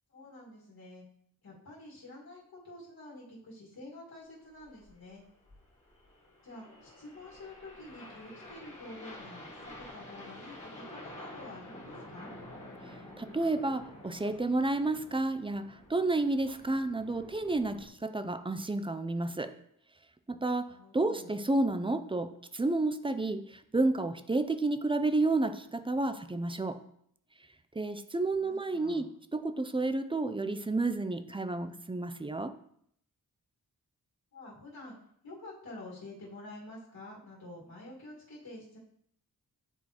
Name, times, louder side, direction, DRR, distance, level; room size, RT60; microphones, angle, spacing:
voice 1, 0.1-1.0 1.4-5.2 6.4-12.3 16.5-16.8 20.7-21.4 28.4-29.1 34.3-38.8, left 2 dB, 70° left, -6 dB, 2.0 m, -49 dB
sound 1, 4.5-17.9, left 1 dB, 20° left, 2.0 m, -49 dB
voice 2, 13.2-19.5 20.3-26.8 27.8-32.5, right 2 dB, 15° right, 10 dB, 0.3 m, -31 dB
9.7 x 3.7 x 2.9 m, 0.68 s
wide cardioid pair, 90°, 37 cm